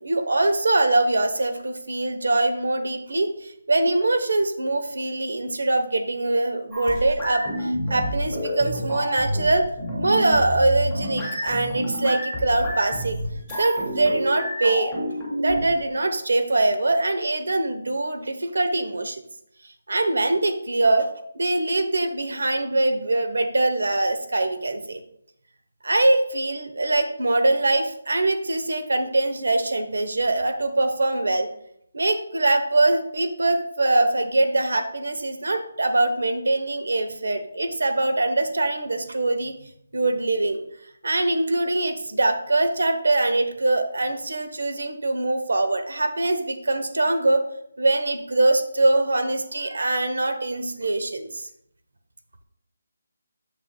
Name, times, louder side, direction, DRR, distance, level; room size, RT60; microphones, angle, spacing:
voice 1, 0.0-9.6 10.0-13.2 13.6-19.2 19.9-21.1 21.3-25.0 25.8-31.5 31.9-39.5 39.9-40.6 41.0-47.4 47.8-51.5, right 2 dB, 85° right, 8 dB, 0.9 m, -23 dB
sound 1, 6.7-15.8, equal, 5° right, 2.0 m, -29 dB
8.2 x 7.3 x 2.3 m, 0.71 s
hypercardioid pair, 180°, 0 cm